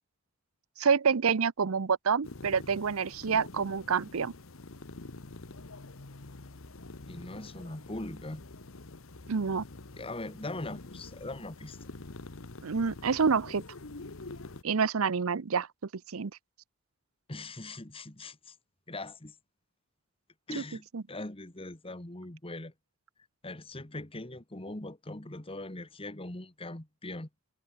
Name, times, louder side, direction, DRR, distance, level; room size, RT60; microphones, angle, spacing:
voice 1, 0.8-4.3 9.3-9.6 12.6-13.6 14.6-15.7 16.1-16.3 20.6-20.7 20.9-21.0, right 6 dB, 80° right, 0.7 m, -27 dB
sound 1, 2.2-14.6, left 2 dB, 70° left, 1.3 m, -46 dB
voice 2, 7.1-8.5 10.0-11.8 17.3-18.5 18.9-19.3 20.5-22.7 23.4-27.3, left 2 dB, 25° left, 1.7 m, -41 dB
head